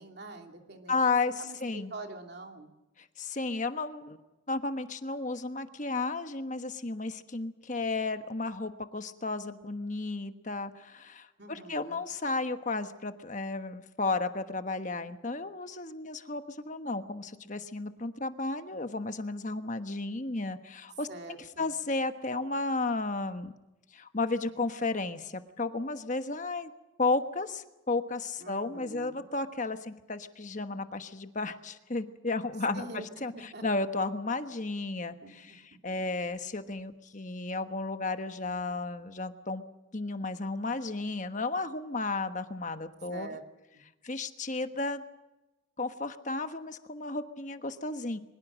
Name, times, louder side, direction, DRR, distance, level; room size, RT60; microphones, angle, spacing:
voice 1, 0.0-1.0 1.4-2.7 11.4-12.0 21.1-21.7 28.4-29.3 32.7-33.1 33.3-33.6 35.2-35.6 43.1-43.4, right 2 dB, 50° right, 3 dB, 2.9 m, -45 dB
voice 2, 0.9-1.9 3.0-4.2 4.5-21.1 21.6-23.5 23.9-26.7 27.0-32.8 33.2-39.6 39.9-43.3 44.0-45.0 45.8-48.2, left 3 dB, 40° left, 8 dB, 1.2 m, -33 dB
23.0 x 21.5 x 6.4 m, 1.0 s
head